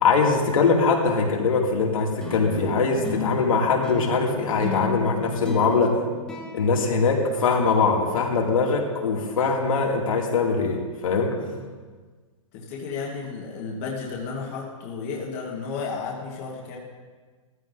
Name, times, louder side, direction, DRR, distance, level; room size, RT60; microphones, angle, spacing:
voice 1, 0.0-6.0 6.5-11.3, left 4 dB, 75° left, -1 dB, 2.3 m, -22 dB
sound 1, 2.2-7.8, left 4 dB, 5° left, 0.9 m, -34 dB
voice 2, 12.5-16.8, left 4 dB, 25° left, -2 dB, 1.2 m, -33 dB
15.0 x 14.0 x 2.6 m, 1.4 s
hypercardioid pair, 175°, 17 cm